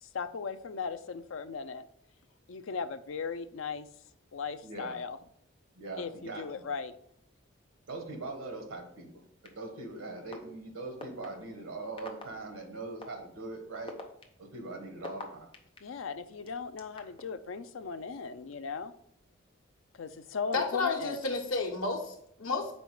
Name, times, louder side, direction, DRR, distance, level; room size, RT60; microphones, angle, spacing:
voice 1, 0.0-1.8 2.5-3.9 4.3-5.2 6.0-7.0 15.8-18.9 20.0-21.2, left 5 dB, 75° left, 11 dB, 0.5 m, -37 dB
voice 2, 4.6-4.9 5.8-6.4 7.9-9.1 9.6-13.9 14.4-15.5, right 2 dB, 85° right, 4 dB, 1.4 m, -41 dB
sound 1, 9.4-9.5 10.3-10.4 11.0-11.3 12.0-12.2 13.0-13.1 13.7-15.8 16.5-17.2, left 2 dB, 25° left, 0.7 m, -43 dB
voice 3, 20.5-22.8, left 3 dB, 90° left, 2 dB, 1.2 m, -31 dB
5.2 x 4.2 x 4.7 m, 0.68 s
head